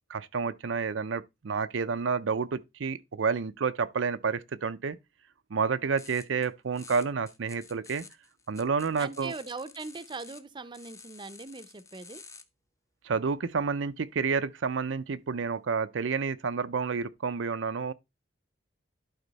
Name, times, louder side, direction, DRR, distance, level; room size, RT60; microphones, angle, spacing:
voice 1, 0.1-5.0 5.5-8.1 8.5-9.3 13.0-17.9, right 5 dB, 85° right, 0.5 m, -30 dB
sound 1, 6.0-6.5 6.7-10.4 10.7-12.4, left 4 dB, 15° left, 0.7 m, -50 dB
voice 2, 9.0-12.2, right 3 dB, 25° right, 0.6 m, -40 dB
11.5 x 4.3 x 4.0 m
head